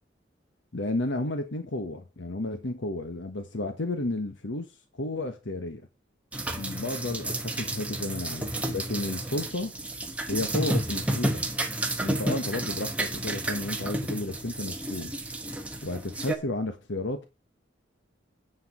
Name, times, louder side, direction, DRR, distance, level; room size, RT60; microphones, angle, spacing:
voice 1, 0.7-4.7 4.9-5.8 6.6-9.7 10.3-11.4 12.0-15.1 15.8-17.3, left 2 dB, 85° left, 1.2 m, -32 dB
sound 1, 6.3-16.4, right 1 dB, 5° right, 1.2 m, -31 dB
9.9 x 4.7 x 5.9 m
head